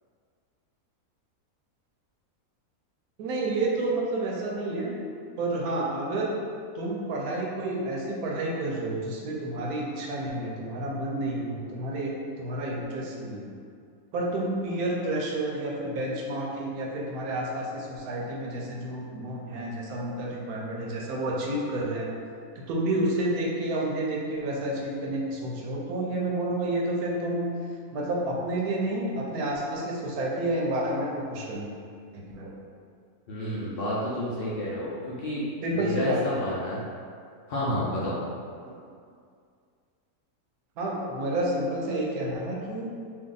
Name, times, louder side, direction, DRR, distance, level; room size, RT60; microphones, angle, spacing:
voice 1, 3.2-5.0 5.4-6.3 6.7-13.5 14.1-22.1 22.6-27.5 27.9-31.7 32.1-32.5 35.6-36.3 38.6-38.7 40.8-42.9, right 1 dB, 80° right, -2 dB, 1.1 m, -30 dB
voice 2, 33.3-35.5 35.7-36.8 37.5-38.2, left 1 dB, 60° left, -8 dB, 0.6 m, -30 dB
2.7 x 2.5 x 3.7 m, 2.3 s
omnidirectional pair, 1.6 m